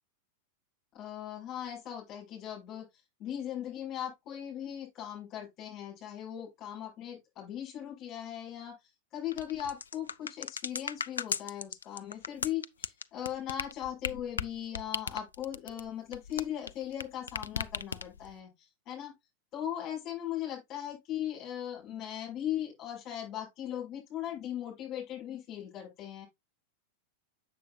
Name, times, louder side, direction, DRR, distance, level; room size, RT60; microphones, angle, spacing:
voice 1, 0.9-2.9 3.2-8.7 9.1-19.1 19.5-26.2, left 11 dB, 35° left, 5.9 m, -38 dB
sound 1, 9.3-17.0 17.3-18.3, left 6 dB, 70° left, 0.3 m, -36 dB
7.7 x 7.0 x 2.6 m
figure-of-eight pair, 90°, 0 cm